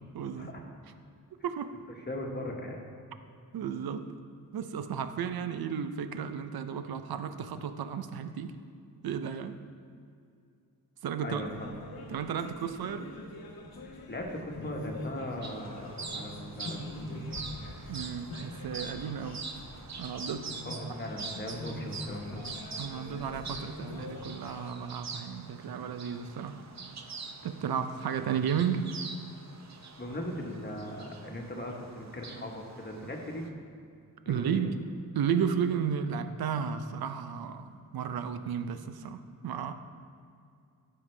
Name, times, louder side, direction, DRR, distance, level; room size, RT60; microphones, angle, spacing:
voice 1, 0.1-0.5 1.4-1.8 3.5-4.1 4.5-8.6 9.0-9.6 11.0-11.5 12.1-13.1 17.9-19.4 20.0-20.5 22.8-26.7 27.4-29.0 34.3-34.8 35.1-39.7, right 7 dB, 85° right, 10 dB, 0.6 m, -33 dB
voice 2, 2.1-2.8 11.2-12.1 13.8-17.2 20.6-22.4 30.0-33.4 34.2-34.7, left 1 dB, 30° left, 0 dB, 1.2 m, -39 dB
sound 1, 11.3-24.7, left 1 dB, 85° left, 1.0 m, -43 dB
sound 2, 15.4-33.5, right 4 dB, 50° right, 0.7 m, -44 dB
14.5 x 5.6 x 3.3 m, 2.4 s
wide cardioid pair, 110°, 36 cm